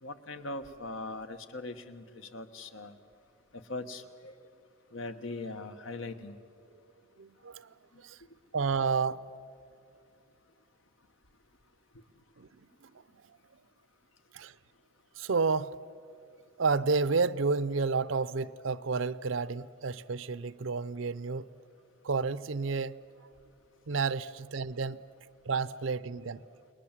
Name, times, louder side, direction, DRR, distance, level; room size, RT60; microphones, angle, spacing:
voice 1, 0.0-2.9 3.7-4.3 4.9-6.3 24.2-24.3 25.7-25.8 26.3-26.4, left 2 dB, 80° left, 8 dB, 1.4 m, -40 dB
voice 2, 7.2-7.7 8.0-8.2 8.5-9.2 12.4-12.5 12.8-12.9 14.3-14.5 15.2-15.7 16.6-21.4 22.0-23.0 23.9-25.0 25.4-26.4, right 4 dB, 75° right, 16 dB, 0.6 m, -30 dB
30.0 x 20.5 x 7.5 m, 2.4 s
head